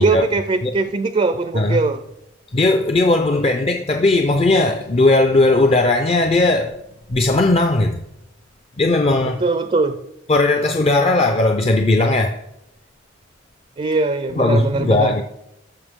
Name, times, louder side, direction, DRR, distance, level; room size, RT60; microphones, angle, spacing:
voice 1, 0.0-2.0 9.4-9.9 13.8-15.1, right 3 dB, 30° right, 0.4 m, -20 dB
voice 2, 2.5-6.7 7.1-8.0 8.8-9.4 10.3-12.4 14.4-15.2, left 2 dB, 30° left, 0.5 m, -17 dB
14.0 x 6.4 x 3.6 m
head